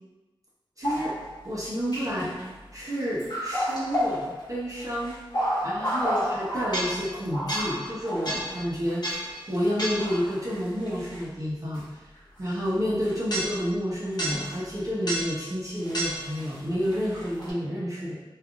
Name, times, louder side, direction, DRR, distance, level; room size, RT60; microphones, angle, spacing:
sound 1, 0.8-1.5 1.9-11.2 11.7-11.8 12.5-12.6 13.0-13.7 14.2-14.7 15.1-15.4 15.8-17.5, equal, 50° left, 0.8 m, -31 dB
voice 1, 0.8-1.1 1.4-2.3 2.7-5.2 5.6-11.9 12.4-18.1, equal, 40° right, -7 dB, 0.7 m, -30 dB
3.3 x 2.4 x 2.3 m, 1.1 s
wide cardioid pair, 80°, 9 cm